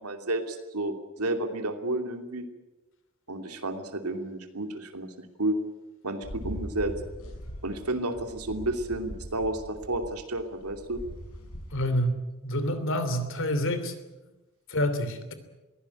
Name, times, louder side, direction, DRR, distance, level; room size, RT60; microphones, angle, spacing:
voice 1, 0.0-2.5 3.3-5.6 6.0-6.9 7.6-11.0, right 1 dB, 85° right, 6 dB, 2.8 m, -31 dB
sound 1, 6.2-11.8, equal, 75° left, 6.4 m, -41 dB
voice 2, 11.7-12.2 12.4-13.9 14.7-15.3, equal, 60° left, 10 dB, 3.1 m, -27 dB
23.0 x 16.0 x 10.0 m, 1.1 s
head